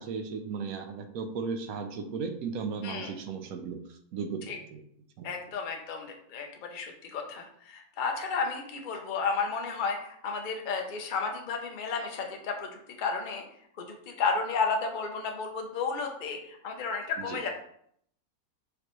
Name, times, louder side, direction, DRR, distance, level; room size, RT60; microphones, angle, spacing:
voice 1, 0.0-4.4 4.7-4.8 5.2-5.3 17.2-17.4, right 5 dB, 75° right, 7 dB, 1.0 m, -36 dB
voice 2, 5.2-12.7 13.0-13.4 13.8-17.5, left 4 dB, 50° left, 3 dB, 0.6 m, -32 dB
5.0 x 3.2 x 3.0 m, 0.67 s
omnidirectional pair, 1.6 m